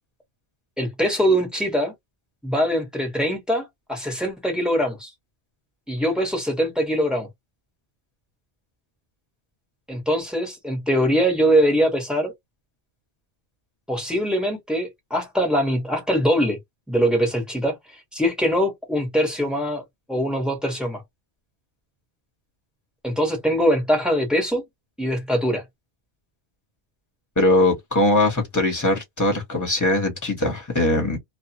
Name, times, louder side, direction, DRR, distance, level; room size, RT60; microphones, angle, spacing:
voice 1, 0.8-1.9 2.4-5.1 5.9-7.3 9.9-12.3 13.9-16.6 16.9-19.8 20.1-21.0 23.0-24.6 25.0-25.6, equal, ahead, 1.1 m, -22 dB
voice 2, 27.4-31.2, left 1 dB, 20° left, 1.2 m, -21 dB
2.4 x 2.3 x 2.8 m
omnidirectional pair, 1.1 m